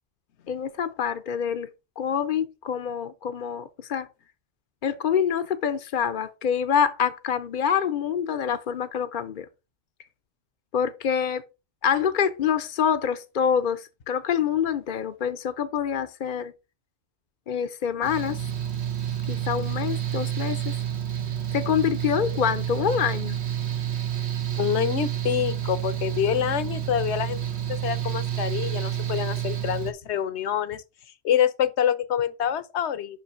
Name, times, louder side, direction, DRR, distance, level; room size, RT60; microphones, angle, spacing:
voice 1, 0.5-1.7 2.0-4.1 4.8-9.5 10.7-11.4 11.8-16.5 17.5-18.4 19.3-20.7 21.5-23.4, left 8 dB, 50° left, 0.7 m, -26 dB
Mechanical fan, 18.0-29.9, right 10 dB, 70° right, 1.3 m, -29 dB
voice 2, 24.6-27.4 27.8-30.8 31.2-33.2, left 9 dB, 75° left, 1.0 m, -26 dB
5.8 x 5.4 x 5.5 m
omnidirectional pair, 1.2 m